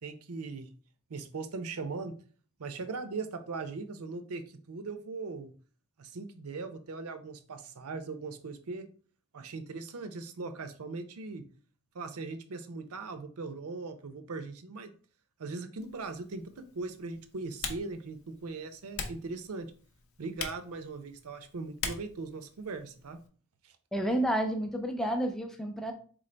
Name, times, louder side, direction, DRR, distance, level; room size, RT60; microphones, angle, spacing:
voice 1, 0.0-0.7 1.1-2.1 2.6-4.4 4.7-5.5 6.0-8.9 9.3-11.4 11.9-14.9 15.4-19.7 20.2-23.2 23.6-23.7, right 3 dB, 80° right, 9 dB, 0.6 m, -39 dB
Typing, 15.8-23.3, left 5 dB, 70° left, 0.7 m, -44 dB
voice 2, 23.9-25.9, right 1 dB, ahead, 4 dB, 0.4 m, -30 dB
3.9 x 3.5 x 3.3 m, 0.42 s
head